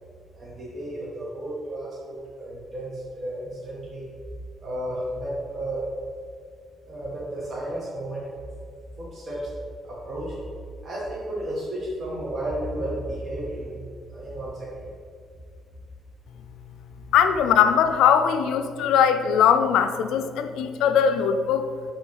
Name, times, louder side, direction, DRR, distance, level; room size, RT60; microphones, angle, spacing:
voice 1, 0.3-4.0 4.6-5.8 6.9-8.3 9.0-9.5 9.8-10.3 10.8-13.8 14.1-14.9, right 1 dB, 45° right, -7 dB, 1.5 m, -33 dB
voice 2, 17.1-21.7, left 8 dB, 90° left, 9 dB, 0.4 m, -20 dB
5.2 x 3.5 x 5.5 m, 2.1 s
cardioid pair, 90°, 0 cm